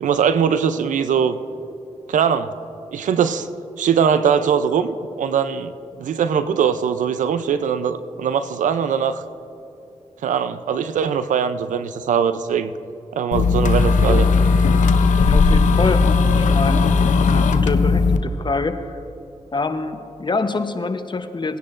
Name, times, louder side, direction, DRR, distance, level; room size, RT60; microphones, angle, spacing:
voice 1, 0.0-1.4 2.1-2.5 2.9-3.5 3.8-5.7 6.0-9.2 10.2-12.7 13.1-14.3, right 7 dB, 80° right, 12 dB, 0.5 m, -21 dB
sound 1, 13.3-18.2, left 4 dB, 75° left, 0.6 m, -16 dB
voice 2, 15.2-16.1 16.4-16.9 17.2-18.8 19.5-21.6, left 3 dB, 35° left, 9 dB, 0.8 m, -25 dB
19.0 x 10.0 x 2.5 m, 2.7 s
cardioid pair, 50°, 13 cm